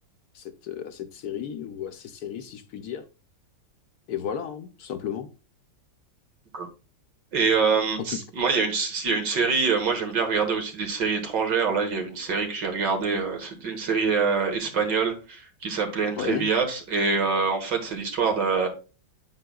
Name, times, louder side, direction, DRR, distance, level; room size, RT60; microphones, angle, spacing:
voice 1, 0.3-3.0 4.1-5.3 8.0-8.2 16.2-16.5, left 8 dB, 65° left, 1.1 m, -33 dB
voice 2, 7.3-18.7, right 5 dB, 70° right, 2.0 m, -25 dB
8.4 x 7.6 x 2.3 m
omnidirectional pair, 2.0 m